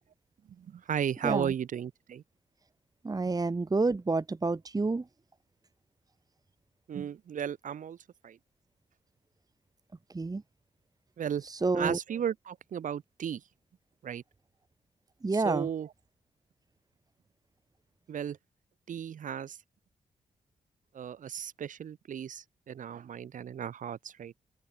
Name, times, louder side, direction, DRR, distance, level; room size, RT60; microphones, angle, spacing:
voice 1, 0.5-2.2 6.9-8.0 8.2-8.4 11.2-11.4 11.7-13.4 14.0-14.2 15.3-15.9 18.1-18.4 18.9-19.6 20.9-24.3, right 8 dB, 70° right, 5.0 m, -35 dB
voice 2, 3.0-5.0 10.1-10.4 11.5-12.0 15.2-15.7, right 3 dB, 25° right, 1.3 m, -29 dB
open air
supercardioid pair, 50°, 14 cm